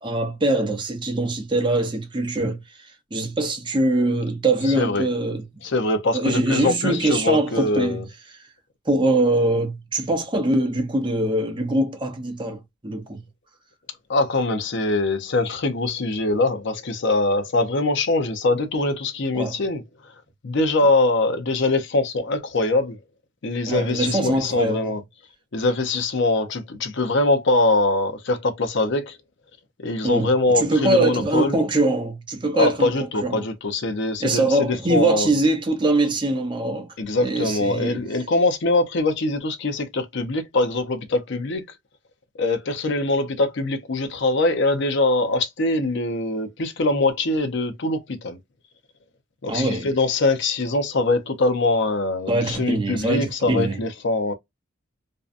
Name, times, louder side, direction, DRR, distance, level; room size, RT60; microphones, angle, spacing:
voice 1, 0.0-5.4 6.1-8.0 8.9-13.2 19.3-19.5 23.7-24.9 30.0-30.3 30.5-32.9 33.2-33.4 34.2-36.9 37.2-38.0 49.5-49.9 52.3-53.8, right 2 dB, 20° right, 0.6 m, -23 dB
voice 2, 5.6-8.1 14.1-19.8 20.4-23.0 23.4-25.0 25.5-29.2 29.8-31.6 32.6-35.3 37.0-41.6 42.4-48.4 49.4-54.3, left 2 dB, 55° left, 0.5 m, -23 dB
2.6 x 2.1 x 2.4 m
head